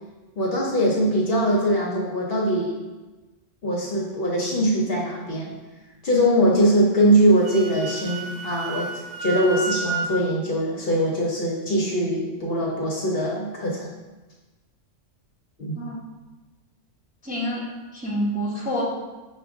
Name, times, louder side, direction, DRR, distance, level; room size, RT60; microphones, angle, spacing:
voice 1, 0.4-2.7 3.6-5.5 6.0-8.9 9.2-13.9 15.6-15.7, equal, 55° left, -2 dB, 0.8 m, -22 dB
Wind instrument woodwind instrument, 7.2-10.1, right 4 dB, 80° right, 1.0 m, -31 dB
voice 2, 17.2-17.6 17.9-18.8, equal, 10° right, -5 dB, 0.6 m, -27 dB
6.1 x 2.4 x 3.5 m, 1.2 s
omnidirectional pair, 1.3 m